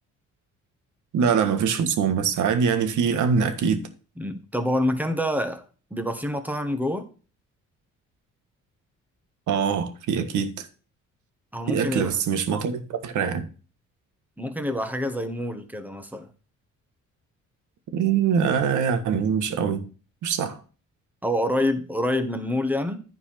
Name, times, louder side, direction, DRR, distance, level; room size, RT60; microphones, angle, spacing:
voice 1, 1.1-3.8 9.5-10.7 11.7-13.5 17.9-19.9 20.2-20.6, right 6 dB, 75° right, 1.6 m, -23 dB
voice 2, 4.2-5.6 5.9-7.1 11.5-12.1 14.4-16.3 21.2-23.0, left 1 dB, 5° right, 1.6 m, -27 dB
10.5 x 4.7 x 5.8 m
cardioid pair, 90°, 30 cm